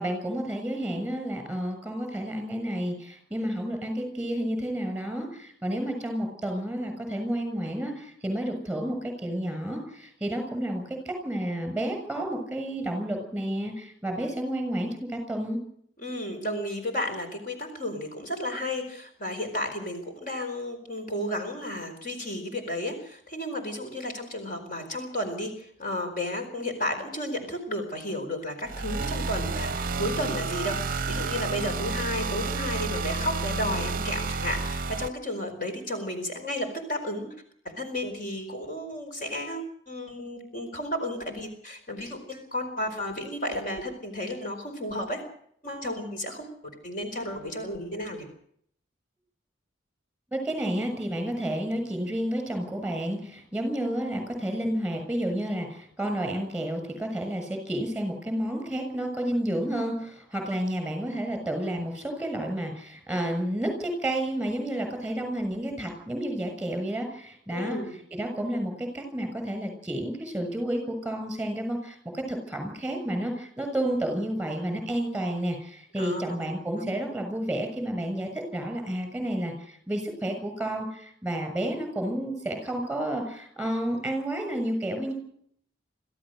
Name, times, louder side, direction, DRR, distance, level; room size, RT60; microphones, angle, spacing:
voice 1, 0.0-15.6 50.3-85.1, right 1 dB, 5° right, 5 dB, 6.9 m, -31 dB
voice 2, 16.0-37.3 37.8-45.2 45.6-46.5 46.8-48.3 67.5-67.9 76.0-76.5 76.8-76.9, left 1 dB, 40° left, 5 dB, 4.6 m, -33 dB
sound 1, 28.6-35.1, right 4 dB, 45° right, 0.7 m, -30 dB
25.5 x 15.5 x 6.6 m, 0.66 s
head